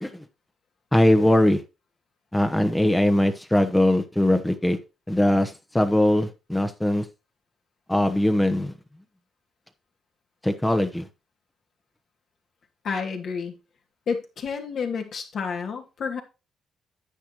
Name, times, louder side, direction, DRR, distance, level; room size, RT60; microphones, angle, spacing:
voice 1, 0.9-1.6 2.3-4.8 5.1-7.1 7.9-8.7 10.4-11.1, left 1 dB, 10° left, 8 dB, 1.0 m, -21 dB
voice 2, 12.8-13.5 14.1-16.2, left 5 dB, 60° left, 3 dB, 2.5 m, -30 dB
10.0 x 8.2 x 3.0 m, 0.28 s
cardioid pair, 90°, 0 cm